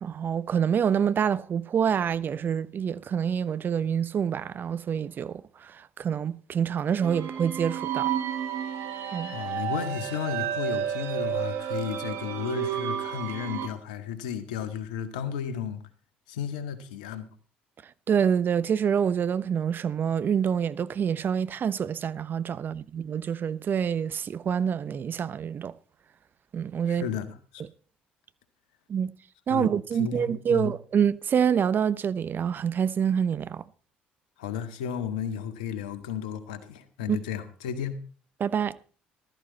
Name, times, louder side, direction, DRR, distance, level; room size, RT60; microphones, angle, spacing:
voice 1, 0.0-8.1 9.1-9.3 18.1-25.7 26.5-27.1 28.9-29.1 29.5-33.6 37.1-37.2 38.4-38.8, right 8 dB, 50° right, 0.9 m, -26 dB
sound 1, 7.0-13.7, right 9 dB, 65° right, 2.5 m, -31 dB
voice 2, 9.3-15.8 16.3-17.3 26.9-27.6 29.5-29.7 30.0-30.7 34.4-38.0, left 8 dB, 85° left, 1.7 m, -33 dB
14.5 x 13.5 x 4.2 m
hypercardioid pair, 60°, 4 cm